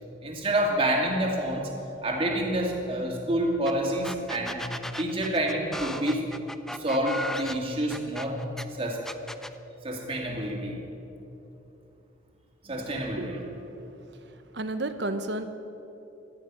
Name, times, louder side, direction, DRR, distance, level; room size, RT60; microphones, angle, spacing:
voice 1, 0.2-1.7 2.0-4.6 5.0-6.3 6.8-8.4 8.8-9.0 9.8-10.7 12.6-13.4, right 1 dB, 30° right, 0 dB, 2.3 m, -28 dB
sound 1, 3.7-3.8 4.0-8.6 9.1-9.6, left 1 dB, ahead, 0.4 m, -36 dB
voice 2, 13.2-14.3 14.5-15.5, right 2 dB, 65° right, 9 dB, 1.0 m, -33 dB
18.0 x 13.0 x 6.2 m, 3.0 s
head